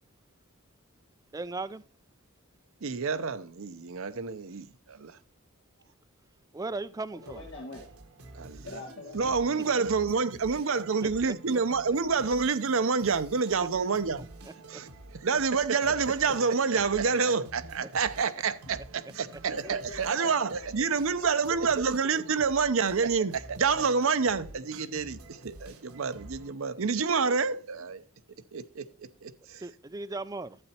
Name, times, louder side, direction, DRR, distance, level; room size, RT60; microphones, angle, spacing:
voice 1, 1.3-1.8 6.5-7.4 11.0-11.1 14.5-14.8 29.6-30.6, right 3 dB, 15° right, 0.4 m, -37 dB
voice 2, 2.8-5.2 8.3-8.7 9.1-14.3 14.7-14.9 15.1-28.0 28.5-29.6, right 5 dB, 65° right, 0.6 m, -28 dB
sound 1, 7.1-26.5, right 1 dB, 80° right, 1.4 m, -49 dB
voice 3, 7.3-9.2 19.5-20.7 21.0-21.3 26.9-27.4, left 2 dB, 55° left, 2.7 m, -46 dB
12.0 x 8.0 x 2.9 m
head